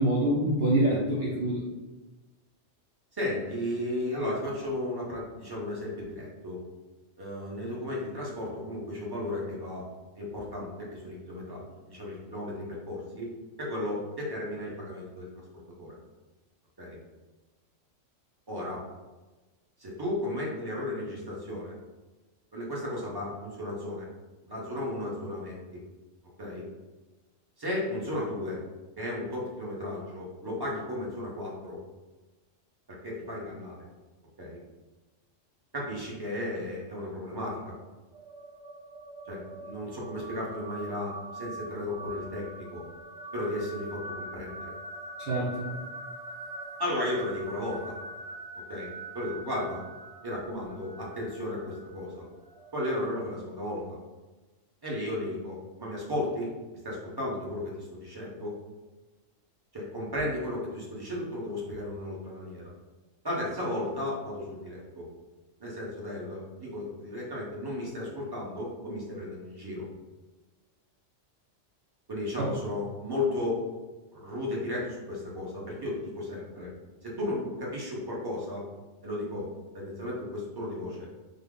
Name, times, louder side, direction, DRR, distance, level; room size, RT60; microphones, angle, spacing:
voice 1, 0.0-1.6 45.2-45.7 72.4-72.5, right 1 dB, 60° right, -5 dB, 0.8 m, -26 dB
voice 2, 3.1-6.6 7.2-9.8 10.2-13.3 13.6-15.3 15.8-15.9 16.8-17.0 18.5-18.8 19.8-21.7 22.5-24.1 24.4-25.6 26.4-26.6 27.6-28.6 29.0-31.8 33.0-33.8 34.4-34.6 35.7-37.7 39.3-42.8 43.3-44.8 46.8-47.9 48.7-49.8 50.2-52.2 52.7-53.8 54.8-56.5 56.8-58.6 59.7-62.6 63.2-65.0 65.6-69.8 72.1-73.6 74.1-76.7 77.0-78.6 79.0-79.5 79.7-81.1, left 1 dB, 20° right, -4 dB, 0.7 m, -34 dB
sound 1, 38.1-53.3, right 1 dB, 85° right, 1.0 m, -43 dB
3.6 x 2.1 x 3.6 m, 1.2 s
omnidirectional pair, 1.3 m